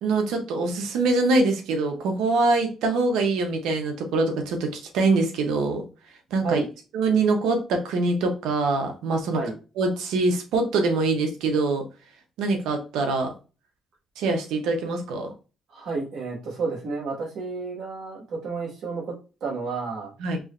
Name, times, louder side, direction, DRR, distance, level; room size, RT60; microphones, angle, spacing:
voice 1, 0.0-5.8 6.3-6.6 6.9-9.4 9.8-11.8 12.4-13.3 14.2-15.3 20.2-20.4, right 3 dB, 90° right, 4 dB, 1.1 m, -24 dB
voice 2, 15.7-19.1 19.4-20.1, right 4 dB, 75° right, -3 dB, 2.0 m, -31 dB
4.7 x 3.1 x 2.7 m, 0.33 s
cardioid pair, 90°, 0 cm